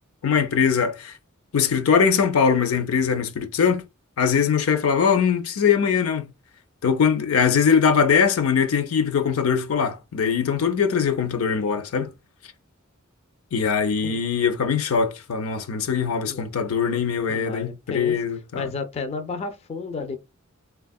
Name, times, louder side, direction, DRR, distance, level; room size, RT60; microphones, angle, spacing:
voice 1, 0.2-1.1 1.5-3.8 4.2-6.3 6.8-12.1 13.5-18.7, left 6 dB, 80° left, 0.5 m, -21 dB
voice 2, 17.3-18.2 18.5-20.2, left 4 dB, 30° left, 0.3 m, -32 dB
3.4 x 2.3 x 2.2 m
head